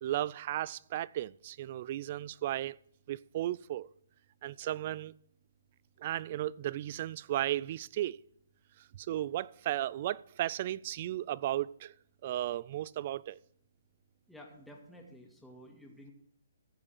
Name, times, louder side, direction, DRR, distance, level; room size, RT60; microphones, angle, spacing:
voice 1, 0.0-2.8 3.1-3.9 4.4-5.1 6.0-8.2 8.8-11.9 12.2-13.4, right 13 dB, 40° right, 0.3 m, -35 dB
voice 2, 14.3-16.1, left 1 dB, ahead, 2.0 m, -52 dB
14.0 x 7.4 x 4.4 m
hypercardioid pair, 150°, 0 cm